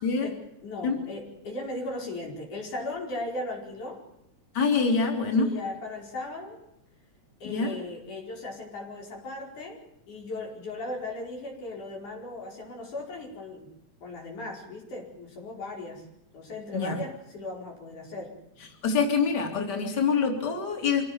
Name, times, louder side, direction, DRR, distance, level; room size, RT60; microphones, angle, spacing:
voice 1, 0.2-4.0 4.9-5.1 5.4-6.6 7.4-9.8 10.1-13.7 14.0-16.0 16.3-18.3, left 2 dB, 85° left, 0 dB, 6.4 m, -37 dB
voice 2, 4.6-5.4 7.4-7.7 16.7-16.9 18.8-21.0, left 5 dB, 35° left, 2 dB, 3.8 m, -25 dB
26.0 x 18.0 x 7.3 m, 0.85 s
omnidirectional pair, 3.4 m